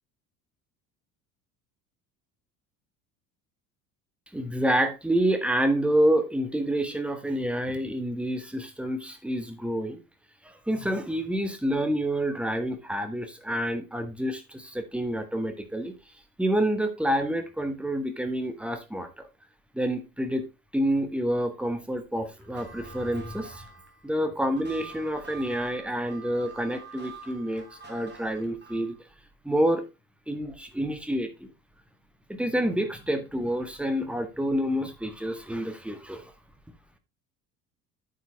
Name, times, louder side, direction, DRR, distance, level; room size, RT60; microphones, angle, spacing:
voice 1, 4.3-10.0 10.4-15.9 16.4-19.3 19.7-20.5 20.7-23.7 24.0-29.1 29.4-29.8 30.3-31.5 32.3-36.3, right 1 dB, ahead, 1.6 m, -28 dB
sound 1, 22.4-29.0, right 5 dB, 20° right, 3.2 m, -46 dB
9.1 x 6.6 x 3.4 m
figure-of-eight pair, 65°, 47 cm